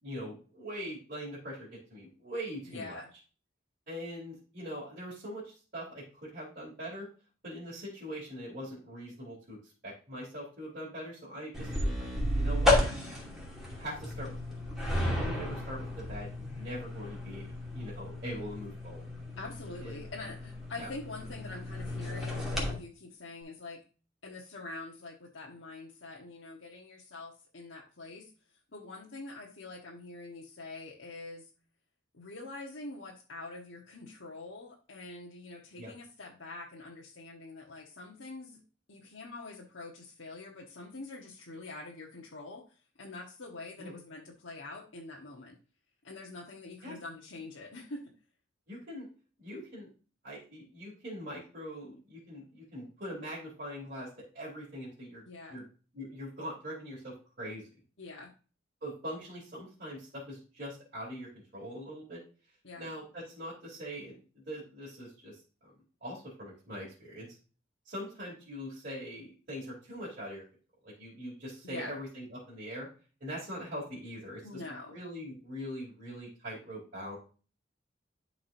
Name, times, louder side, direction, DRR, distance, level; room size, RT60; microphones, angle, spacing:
voice 1, 0.0-3.0 3.9-7.1 7.4-12.1 12.3-12.8 13.7-14.4 15.1-17.5 17.7-19.0 19.8-20.1 20.8-20.9 35.8-35.9 43.8-44.0 46.8-47.0 48.7-49.1 49.4-49.9 50.2-55.2 55.5-55.6 55.9-57.7 58.8-62.2 62.8-65.7 66.0-67.3 67.8-70.4 70.8-72.9 73.2-77.2, equal, 50° right, -8 dB, 3.3 m, -42 dB
voice 2, 2.7-3.1 19.4-23.8 24.2-28.3 28.7-31.5 32.1-38.6 38.9-42.6 42.9-45.6 46.0-48.1 55.3-55.6 58.0-58.3 62.6-62.9 71.6-71.9 74.4-75.0, left 2 dB, 75° left, -3 dB, 1.3 m, -45 dB
sound 1, 11.5-22.7, left 1 dB, ahead, 2.6 m, -33 dB
11.5 x 4.9 x 2.7 m, 0.36 s
head